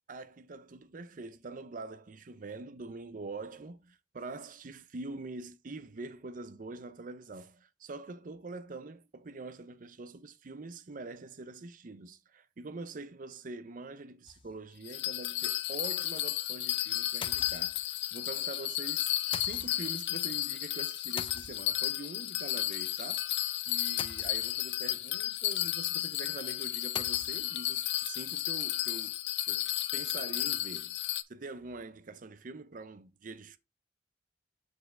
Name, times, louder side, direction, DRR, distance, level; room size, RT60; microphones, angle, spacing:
voice 1, 0.1-23.3 23.7-29.2 29.5-31.0 31.3-33.6, right 3 dB, 50° right, 0.6 m, -44 dB
sound 1, 14.3-14.8 15.2-15.3 15.5-15.6 17.2-18.1 19.3-20.0 21.2-22.0 24.0-24.8 26.9-27.5, left 6 dB, 30° left, 0.5 m, -44 dB
Bell, 14.9-31.2, left 14 dB, 80° left, 0.5 m, -33 dB
6.9 x 4.2 x 3.7 m
head